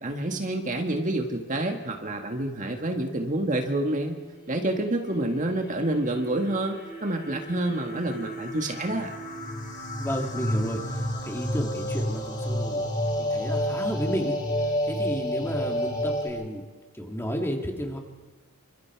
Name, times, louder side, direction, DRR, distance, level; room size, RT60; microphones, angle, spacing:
voice 1, 0.0-4.2 4.5-9.1, right 1 dB, 35° right, 3 dB, 1.9 m, -28 dB
sound 1, 4.9-16.3, equal, 35° left, 7.2 m, -31 dB
voice 2, 10.0-14.4 14.8-16.6 16.9-18.0, equal, 10° left, 2 dB, 2.8 m, -32 dB
28.5 x 26.0 x 4.8 m, 1.3 s
head